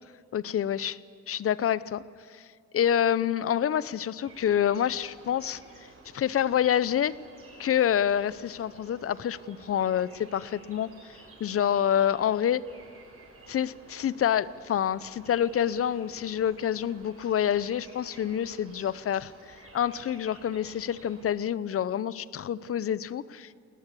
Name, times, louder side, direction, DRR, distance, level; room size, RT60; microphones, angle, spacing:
voice 1, 0.3-0.9 1.3-2.0 2.3-2.5 2.7-5.6 6.1-7.1 7.6-12.6 13.5-23.5, left 9 dB, 50° left, 18 dB, 0.7 m, -27 dB
sound 1, 4.2-21.2, right 3 dB, 50° right, 7.1 m, -53 dB
21.0 x 18.5 x 8.4 m, 2.2 s
cardioid pair, 90°, 30 cm